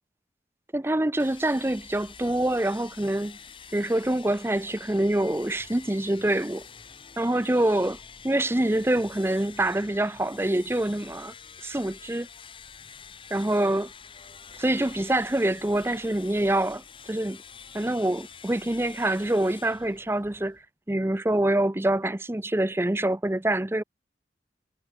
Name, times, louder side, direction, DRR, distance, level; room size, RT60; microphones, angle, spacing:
voice 1, 0.7-3.4 3.7-6.7 7.2-8.0 8.2-11.3 11.6-12.3 13.3-13.9 14.6-17.4 17.7-20.6 20.9-23.8, right 1 dB, 15° right, 0.5 m, -25 dB
sound 1, 1.2-20.7, left 6 dB, 30° left, 2.2 m, -47 dB
head